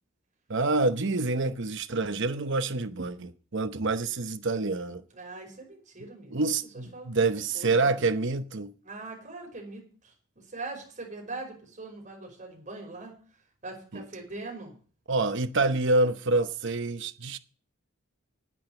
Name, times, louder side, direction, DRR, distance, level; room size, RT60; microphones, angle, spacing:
voice 1, 0.5-5.0 6.3-8.7 13.9-14.0 15.1-17.4, right 3 dB, 60° right, 0.9 m, -27 dB
voice 2, 5.1-6.4 6.7-8.1 8.8-13.2 13.6-14.7, right 3 dB, 35° right, 5.5 m, -42 dB
10.0 x 8.9 x 7.8 m
head